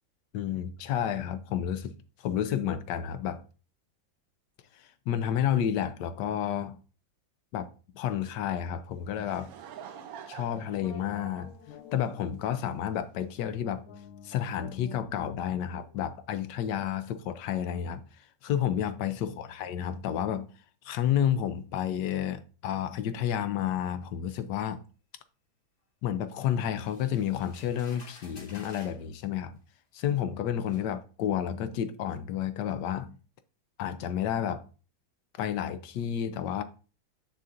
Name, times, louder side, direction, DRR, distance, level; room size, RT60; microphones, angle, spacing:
voice 1, 0.3-1.9 2.2-3.4 4.8-6.8 7.5-7.7 7.9-9.5 10.3-11.5 11.9-13.9 14.2-18.0 18.4-20.5 20.8-24.8 26.0-29.6 29.9-33.2 33.8-34.7 35.4-36.6, left 10 dB, 70° left, 1.2 m, -30 dB
Laughter / Crowd, 8.9-12.7, right 8 dB, 70° right, 0.9 m, -47 dB
sound 1, 10.8-13.1 13.8-17.2, left 9 dB, 85° left, 1.6 m, -50 dB
sound 2, 26.8-29.0 30.0-30.1 30.7-30.9, left 3 dB, 40° left, 1.8 m, -52 dB
7.7 x 6.7 x 2.5 m
omnidirectional pair, 2.2 m